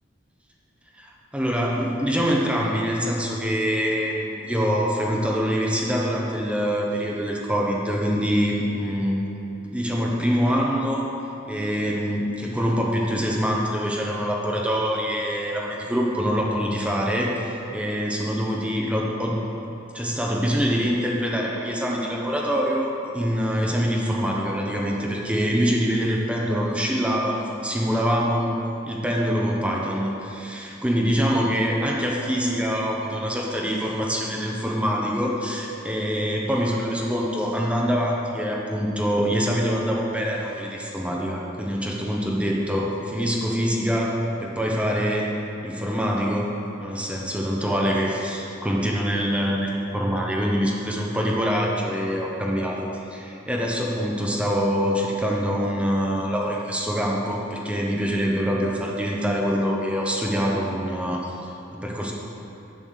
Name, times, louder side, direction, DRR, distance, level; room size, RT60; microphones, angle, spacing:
voice 1, 1.0-9.2 9.7-11.1 11.5-19.4 19.9-28.5 28.9-45.2 45.6-46.5 46.8-62.1, equal, 5° right, -2 dB, 0.9 m, -25 dB
7.6 x 7.3 x 6.6 m, 3.0 s
head